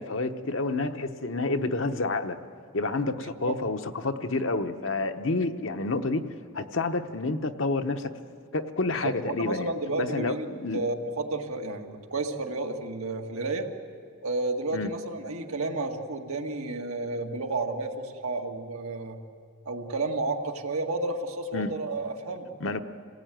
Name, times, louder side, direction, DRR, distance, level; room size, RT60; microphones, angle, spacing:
voice 1, 0.0-2.4 2.7-6.2 6.5-8.1 8.5-9.7 10.0-10.8 14.7-14.9 21.5-21.7 22.6-22.8, left 3 dB, 60° left, 7 dB, 1.0 m, -29 dB
voice 2, 3.2-3.6 9.0-9.1 9.4-10.5 10.7-13.7 14.2-19.2 19.7-22.5, right 2 dB, 85° right, 3 dB, 1.8 m, -31 dB
27.0 x 17.5 x 9.1 m, 2.3 s
head